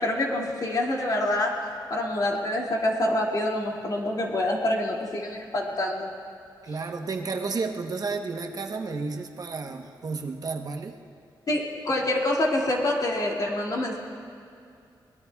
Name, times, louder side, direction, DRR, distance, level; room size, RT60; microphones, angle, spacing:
voice 1, 0.0-6.1 11.5-14.0, left 1 dB, 50° left, -3 dB, 2.4 m, -26 dB
voice 2, 6.6-10.9, right 4 dB, 50° right, 4 dB, 0.9 m, -32 dB
24.0 x 20.5 x 2.3 m, 2.5 s
wide cardioid pair, 115°, 8 cm